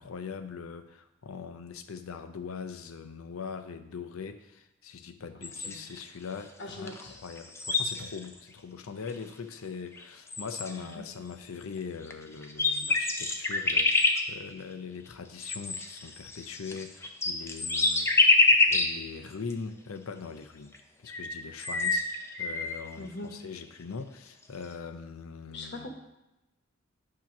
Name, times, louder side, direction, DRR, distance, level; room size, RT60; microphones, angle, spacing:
voice 1, 0.0-18.3 18.7-20.7 21.0-25.9, left 5 dB, 85° left, 9 dB, 0.6 m, -41 dB
voice 2, 5.3-5.9 6.6-7.2 10.8-11.1 23.0-23.4 25.5-25.9, left 2 dB, 55° left, 2 dB, 1.1 m, -42 dB
sound 1, 5.4-6.0 6.9-7.0 7.3-8.3 9.1-9.2 10.0-10.1 10.3-10.9 12.0-12.1 12.4-14.2 15.4-19.0 19.5-19.6 20.7-20.8 21.1-22.8, left 2 dB, 15° left, 0.5 m, -26 dB
8.6 x 2.9 x 5.8 m, 0.93 s
head